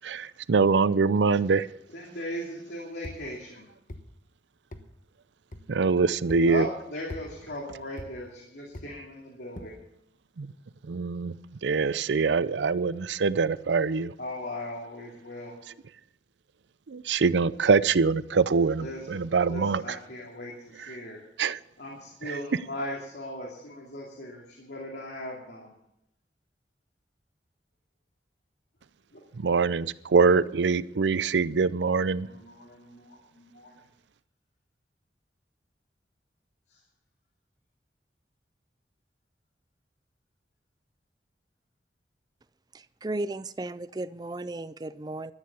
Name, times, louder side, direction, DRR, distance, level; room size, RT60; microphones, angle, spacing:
voice 1, 0.0-1.7 5.7-6.7 10.4-10.5 10.9-11.3 11.6-14.1 16.9-20.0 21.4-21.6 29.4-32.3, right 4 dB, 90° right, 0.5 m, -24 dB
voice 2, 1.9-3.7 6.5-9.8 14.2-15.6 18.8-21.2 21.8-25.7 29.1-29.2 32.2-33.8 36.7-36.8, left 1 dB, 80° left, 2.6 m, -38 dB
sound 1, 3.0-3.2 3.9-4.0 4.7-4.9 5.5-5.6 6.3-6.5 7.1-7.3 8.0-8.1 8.7-8.9 9.5-9.7, left 1 dB, 45° left, 1.2 m, -40 dB
voice 3, 43.0-45.3, right 2 dB, 25° right, 0.4 m, -34 dB
13.0 x 9.7 x 7.0 m
head